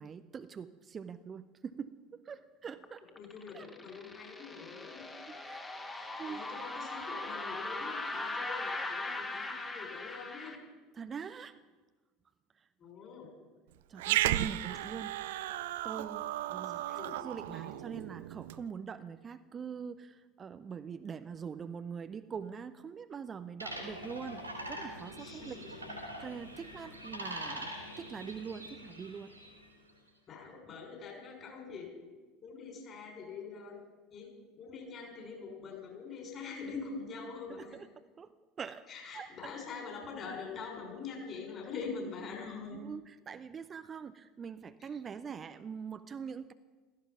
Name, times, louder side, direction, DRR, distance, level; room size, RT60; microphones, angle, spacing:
voice 1, 0.0-3.1 3.5-3.7 5.3-5.9 6.2-6.4 10.9-11.6 12.5-12.7 13.9-15.1 15.8-16.8 17.2-25.8 26.2-29.3 37.5-38.3 38.6-39.5 42.7-46.5, right 6 dB, 30° right, 11 dB, 0.7 m, -44 dB
sound 1, 2.8-10.6, left 2 dB, 15° left, 2.1 m, -40 dB
voice 2, 3.1-5.0 5.9-10.6 12.8-13.3 16.6-17.2 17.6-18.0 25.2-25.7 30.3-31.9 32.4-33.8 34.1-34.3 34.6-37.8 38.9-42.8, left 5 dB, 35° left, 1 dB, 6.0 m, -44 dB
Growling, 14.0-18.6, right 14 dB, 65° right, 0.5 m, -34 dB
sound 2, 23.6-29.7, equal, 85° right, 3.4 m, -44 dB
16.5 x 15.0 x 5.9 m, 1.3 s
figure-of-eight pair, 70°, 0 cm